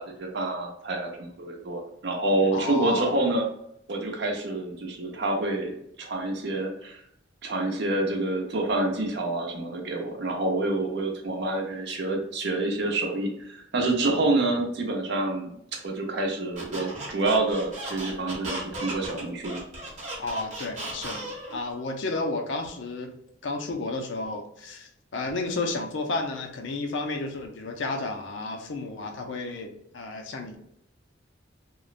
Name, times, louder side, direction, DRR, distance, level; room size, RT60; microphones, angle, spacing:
voice 1, 0.0-3.5 3.9-7.0 7.4-19.6, right 2 dB, 65° right, 2 dB, 0.6 m, -27 dB
voice 2, 2.5-3.1 20.2-23.1 23.4-30.6, left 3 dB, 75° left, 3 dB, 0.5 m, -32 dB
Squeak, 16.5-21.6, right 1 dB, 40° right, 1.0 m, -36 dB
3.0 x 2.0 x 2.4 m, 0.75 s
head